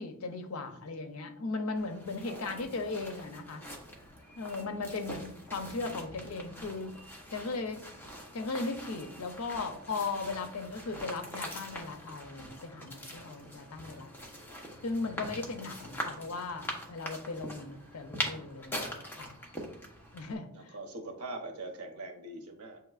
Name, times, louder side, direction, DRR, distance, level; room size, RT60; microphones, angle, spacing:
voice 1, 0.0-3.6 4.4-7.0 7.3-7.8 8.3-14.1 14.8-19.4 20.1-20.7, left 3 dB, 70° left, 7 dB, 0.6 m, -37 dB
sound 1, 1.8-20.3, equal, 10° left, 0.7 m, -43 dB
voice 2, 2.3-3.0 5.5-6.0 14.4-14.8 20.5-22.8, right 2 dB, 90° right, 3 dB, 0.8 m, -44 dB
7.6 x 2.9 x 2.4 m, 0.70 s
head